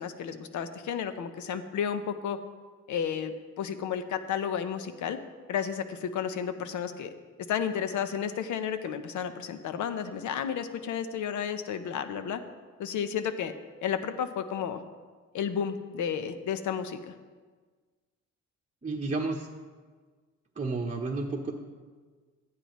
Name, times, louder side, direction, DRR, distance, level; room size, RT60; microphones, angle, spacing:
voice 1, 0.0-2.4 2.9-5.2 5.5-7.1 7.5-12.4 12.8-13.5 13.8-14.8 15.3-17.1, left 8 dB, 75° left, 10 dB, 0.9 m, -32 dB
voice 2, 18.8-19.5 20.6-21.5, right 3 dB, 25° right, 0 dB, 0.9 m, -31 dB
14.0 x 9.8 x 3.1 m, 1.4 s
cardioid pair, 90°, 30 cm